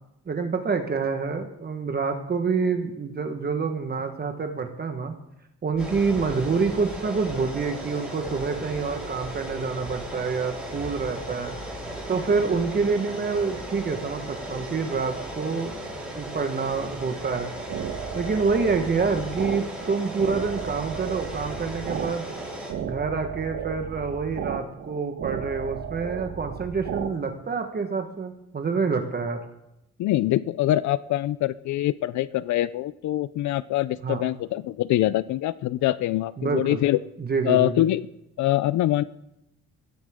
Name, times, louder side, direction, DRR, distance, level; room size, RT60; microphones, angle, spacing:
voice 1, 0.3-5.1 5.6-11.5 12.1-15.7 16.1-17.5 18.1-22.3 22.8-29.4 34.0-34.2 36.4-36.8 37.2-37.8, right 4 dB, 30° right, 5 dB, 1.3 m, -27 dB
sound 1, 5.7-20.5, equal, 15° left, 4.1 m, -46 dB
sound 2, 5.8-22.7, right 1 dB, ahead, 7.3 m, -37 dB
sound 3, 17.3-27.1, right 8 dB, 70° right, 1.3 m, -34 dB
voice 2, 30.0-37.0 37.4-38.1 38.4-39.0, left 14 dB, 70° left, 17 dB, 0.5 m, -24 dB
21.5 x 15.5 x 3.6 m, 0.84 s
cardioid pair, 120°, 30 cm